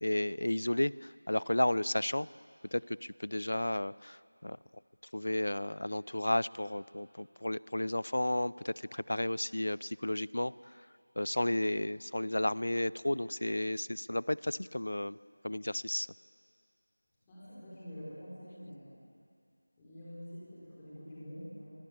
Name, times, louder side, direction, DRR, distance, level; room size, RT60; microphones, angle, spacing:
voice 1, 0.0-2.3 2.7-4.6 5.1-10.5 11.2-15.2 15.4-16.1, left 1 dB, 60° left, 20 dB, 0.6 m, -33 dB
voice 2, 17.2-18.9 19.8-21.7, equal, 10° left, -10 dB, 4.3 m, -47 dB
25.5 x 24.0 x 8.4 m, 2.3 s
figure-of-eight pair, 180°, 0 cm